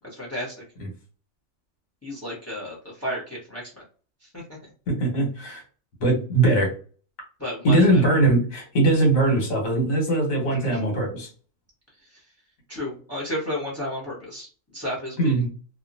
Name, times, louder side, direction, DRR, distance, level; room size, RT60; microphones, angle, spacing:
voice 1, 0.1-0.5 2.0-3.7 4.3-4.4 7.4-8.1 10.6-10.8 12.7-14.5 14.7-15.3, left 1 dB, 15° left, -3 dB, 0.9 m, -32 dB
voice 2, 4.9-5.6 6.0-6.7 7.6-11.3 15.2-15.5, right 2 dB, 85° left, 0 dB, 1.6 m, -21 dB
2.9 x 2.4 x 2.6 m, 0.39 s
omnidirectional pair, 1.4 m